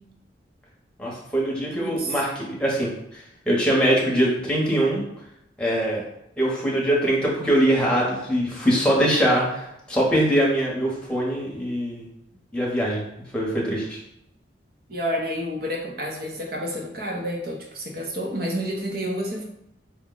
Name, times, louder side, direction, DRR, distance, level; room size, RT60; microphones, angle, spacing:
voice 1, 1.0-5.0 5.6-6.0 6.4-12.1 12.5-13.0 13.3-14.0, right 1 dB, 5° left, -4 dB, 0.9 m, -22 dB
voice 2, 1.7-2.2 14.9-19.4, equal, 50° right, 0 dB, 0.7 m, -29 dB
4.9 x 2.2 x 3.8 m, 0.81 s
head